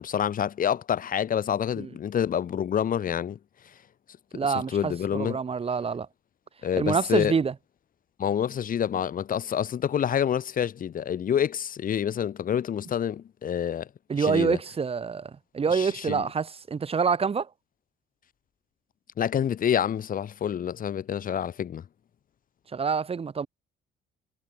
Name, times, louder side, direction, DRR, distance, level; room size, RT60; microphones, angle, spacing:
voice 1, 0.0-3.4 4.7-5.4 6.6-7.3 8.2-13.9 14.2-14.6 15.7-16.2 19.2-21.8, left 9 dB, 50° left, 4.1 m, -27 dB
voice 2, 4.3-6.1 6.7-7.5 14.1-17.5 22.7-23.5, right 5 dB, 30° right, 6.7 m, -26 dB
cardioid pair, 115°, 18 cm